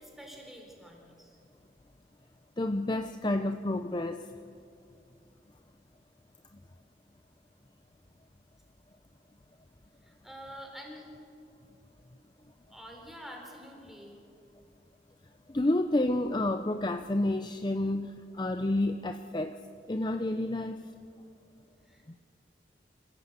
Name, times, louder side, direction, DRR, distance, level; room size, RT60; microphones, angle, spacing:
voice 1, 0.0-1.4 10.0-11.4 12.7-14.2 21.9-22.2, equal, ahead, 1 dB, 4.1 m, -47 dB
voice 2, 2.6-4.2 15.5-19.6 19.9-20.9, left 1 dB, 25° left, 8 dB, 0.6 m, -30 dB
26.5 x 16.0 x 8.1 m, 2.5 s
head